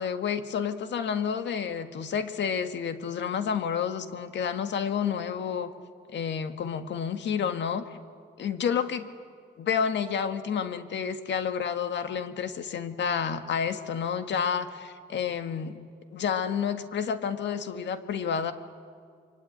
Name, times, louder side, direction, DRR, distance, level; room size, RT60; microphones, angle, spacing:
voice 1, 0.0-5.7 6.1-7.8 8.4-9.1 9.6-15.8 16.1-18.5, left 7 dB, 65° left, 9 dB, 1.8 m, -30 dB
26.5 x 24.0 x 9.2 m, 2.1 s
cardioid pair, 90°, 20 cm